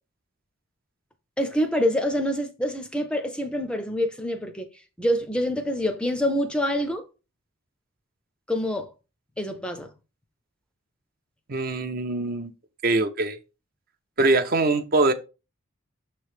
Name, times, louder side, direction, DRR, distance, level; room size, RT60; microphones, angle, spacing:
voice 1, 1.4-4.7 5.0-7.0 8.5-8.9 9.4-9.9, equal, 5° left, 0.5 m, -26 dB
voice 2, 11.5-12.5 12.8-13.4 14.2-15.1, right 2 dB, 45° right, 0.6 m, -23 dB
6.5 x 3.1 x 4.8 m
head